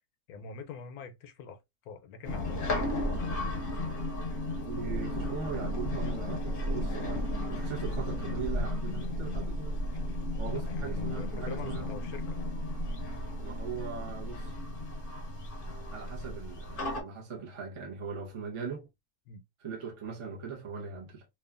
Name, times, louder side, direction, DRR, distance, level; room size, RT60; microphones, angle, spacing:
voice 1, 0.3-1.6 1.8-2.9 10.5-12.4 19.3-19.4, left 5 dB, 75° left, 1.0 m, -45 dB
sound 1, 2.2-17.0, left 1 dB, 50° left, 0.7 m, -34 dB
voice 2, 4.7-9.8 10.4-11.9 13.4-14.5 15.9-18.9 19.6-21.3, right 6 dB, 45° right, 0.4 m, -40 dB
3.0 x 2.3 x 2.3 m
omnidirectional pair, 1.7 m